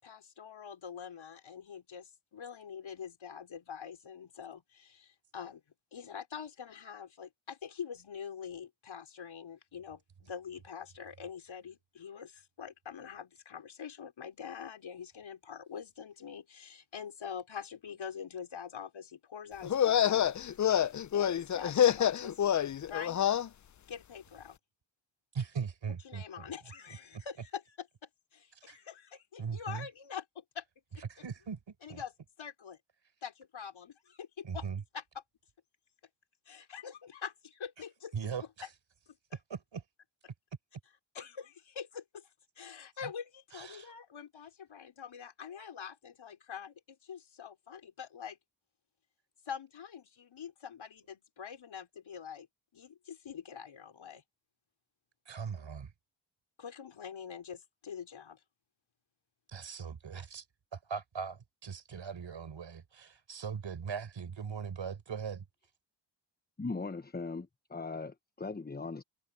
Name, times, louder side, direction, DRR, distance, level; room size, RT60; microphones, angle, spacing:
voice 1, 0.0-5.6 5.9-20.3 20.6-22.4 22.8-23.2 23.9-24.6 26.0-30.6 30.9-31.0 31.8-32.1 32.4-32.8 33.2-34.6 34.9-35.0 36.5-38.1 38.4-38.5 41.1-42.3 42.6-48.4 49.5-52.5 52.7-54.2 56.6-58.4, left 7 dB, 70° left, 5.0 m, -45 dB
sound 1, 19.6-23.5, left 10 dB, 40° left, 0.5 m, -27 dB
voice 2, 25.3-26.5 28.6-28.8 29.4-29.9 31.1-32.0 34.4-34.8 38.1-38.7 39.5-39.8 43.5-43.9 55.3-55.9 59.5-60.4 60.7-65.4, right 6 dB, 65° right, 4.6 m, -40 dB
voice 3, 66.6-69.0, left 3 dB, 20° left, 1.1 m, -39 dB
supercardioid pair, 45°, 48 cm